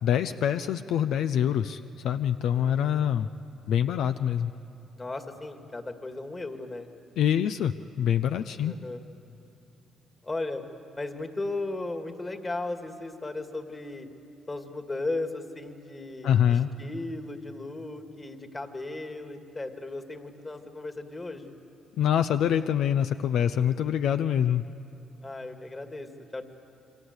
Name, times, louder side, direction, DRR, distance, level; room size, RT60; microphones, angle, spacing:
voice 1, 0.0-3.3 3.7-4.5 7.2-8.7 16.2-16.7 22.0-24.6, left 9 dB, 80° left, 10 dB, 0.6 m, -25 dB
voice 2, 2.5-3.1 5.0-6.9 8.6-9.0 10.2-10.7 11.0-14.1 14.5-21.5 25.2-26.4, left 2 dB, 25° left, 6 dB, 2.2 m, -36 dB
27.5 x 24.0 x 8.2 m, 2.8 s
cardioid pair, 90°, 0 cm